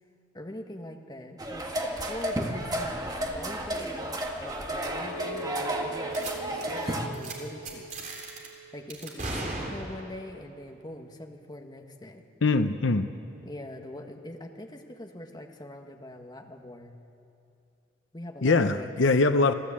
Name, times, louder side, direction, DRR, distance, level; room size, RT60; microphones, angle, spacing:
voice 1, 0.3-1.7 2.1-6.2 6.6-7.9 8.7-12.2 13.4-17.0 18.1-18.9, left 1 dB, 20° left, 3 dB, 1.5 m, -43 dB
sound 1, 1.4-7.1, right 1 dB, 20° right, 1.6 m, -32 dB
Chink clink, 4.8-9.1 9.6-10.0, right 2 dB, 75° right, 7.6 m, -42 dB
sound 2, 6.1-6.3 6.6-6.8 7.1-7.3 7.6-8.5 8.9-10.2, right 2 dB, 40° right, 3.7 m, -36 dB
voice 2, 12.4-13.1 18.4-19.5, left 3 dB, 70° left, 9 dB, 0.7 m, -22 dB
26.0 x 15.5 x 8.6 m, 2.6 s
head